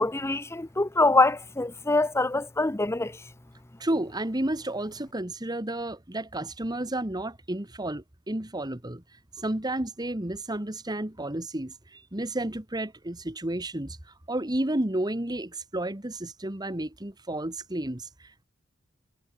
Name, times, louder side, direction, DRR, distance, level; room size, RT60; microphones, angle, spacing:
voice 1, 0.0-3.2, left 2 dB, 10° left, 0.7 m, -24 dB
voice 2, 3.8-9.0 9.4-14.0 14.3-18.4, right 1 dB, 20° right, 1.6 m, -31 dB
head